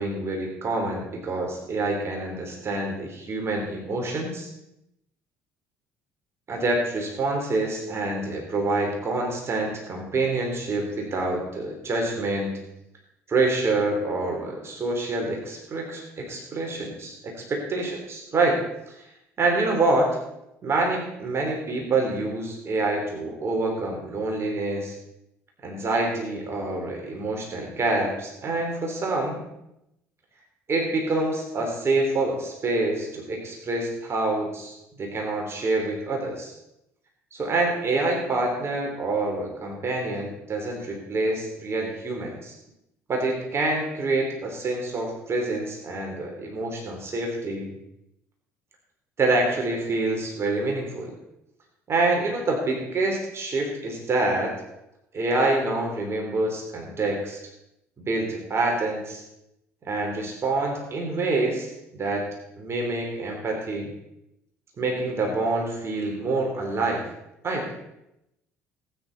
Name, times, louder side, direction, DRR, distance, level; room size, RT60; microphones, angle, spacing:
voice 1, 0.0-4.5 6.5-12.6 13.3-18.6 19.4-20.1 20.6-24.9 25.6-29.4 30.7-36.5 37.3-42.5 43.1-47.7 49.2-51.1 51.9-54.6 55.1-57.4 58.0-59.2 59.8-62.3 62.6-63.9 64.8-67.0 67.4-67.7, right 2 dB, 35° right, 0 dB, 3.4 m, -26 dB
19.0 x 9.5 x 4.1 m, 0.84 s
figure-of-eight pair, 55°, 8 cm